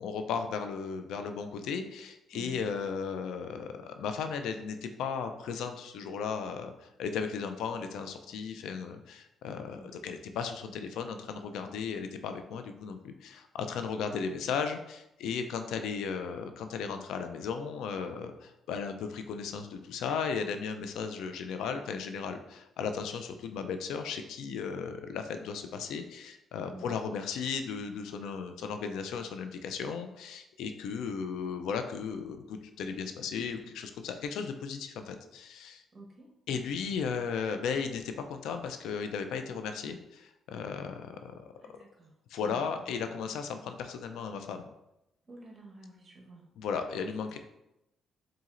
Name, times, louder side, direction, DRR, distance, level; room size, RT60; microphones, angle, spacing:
voice 1, 0.0-35.8 36.5-41.5 42.3-44.6 46.6-47.4, left 6 dB, 85° left, 7 dB, 0.4 m, -36 dB
voice 2, 2.3-2.6 9.8-10.1 26.7-26.9 35.9-36.3 41.6-42.1 42.4-42.7 45.3-46.4 46.9-47.1, right 2 dB, 35° right, -1 dB, 1.1 m, -49 dB
4.2 x 3.8 x 2.5 m, 0.89 s
cardioid pair, 90°, 0 cm